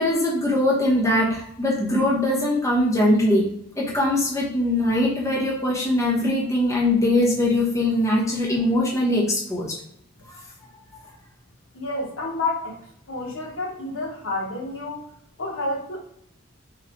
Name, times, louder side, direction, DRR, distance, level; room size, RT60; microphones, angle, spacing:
voice 1, 0.0-9.8 10.3-10.4, left 1 dB, 15° left, -4 dB, 0.8 m, -22 dB
voice 2, 11.7-12.8 13.1-15.1 15.4-16.0, left 2 dB, 75° left, -1 dB, 1.2 m, -29 dB
3.8 x 2.2 x 4.3 m, 0.72 s
head